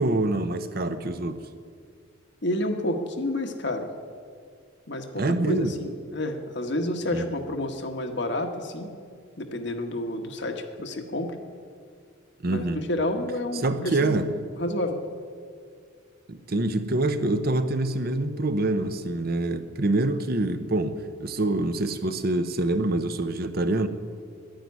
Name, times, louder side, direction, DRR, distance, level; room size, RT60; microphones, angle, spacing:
voice 1, 0.0-1.5 5.2-5.8 7.1-7.3 12.4-12.8 13.6-14.5 16.3-23.9, right 2 dB, 45° right, 10 dB, 0.7 m, -26 dB
voice 2, 2.4-3.9 4.9-8.9 9.4-11.4 12.4-14.2 14.6-15.0, left 1 dB, 55° left, 5 dB, 1.3 m, -29 dB
10.5 x 10.0 x 9.4 m, 2.1 s
head